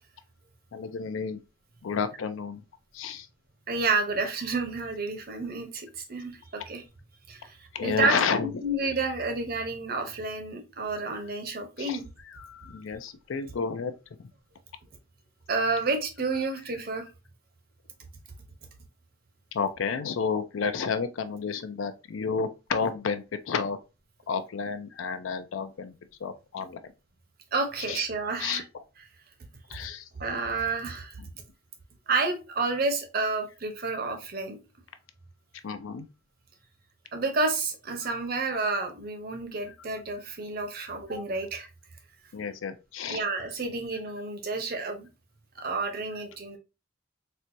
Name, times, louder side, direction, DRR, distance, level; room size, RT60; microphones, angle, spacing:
voice 1, 0.7-1.4 1.8-2.6 2.9-3.3 7.7-8.5 11.8-12.0 12.3-13.9 14.2-14.3 19.5-23.8 24.3-26.0 26.2-26.9 27.9-28.0 28.4-28.6 29.7-30.1 35.6-36.1 38.0-38.2 42.3-43.2, left 5 dB, 75° left, 0.4 m, -31 dB
voice 2, 3.7-6.8 7.3-8.1 8.4-12.1 15.5-17.1 27.5-28.6 30.2-31.2 32.1-34.6 37.1-41.7 43.1-45.1 45.6-46.6, right 3 dB, 45° right, 0.7 m, -30 dB
4.3 x 2.2 x 2.6 m
head